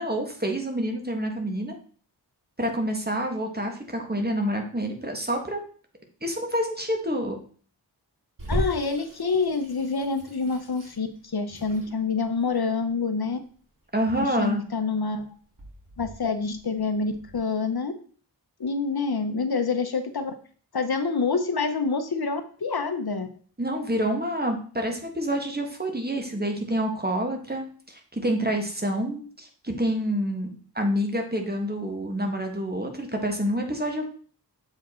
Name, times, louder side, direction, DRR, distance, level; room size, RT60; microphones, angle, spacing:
voice 1, 0.0-1.7 2.6-5.6 6.2-7.4 13.9-14.6 23.6-34.0, equal, 20° right, 3 dB, 1.6 m, -28 dB
Water tap faucet / Sink (filling or washing), 8.4-17.4, equal, 50° right, 2.6 m, -38 dB
voice 2, 8.5-13.4 14.2-15.2 16.0-17.9 18.6-20.3 20.7-23.3, left 4 dB, 60° left, 9 dB, 0.8 m, -27 dB
7.2 x 4.9 x 4.3 m, 0.44 s
wide cardioid pair, 65°, 42 cm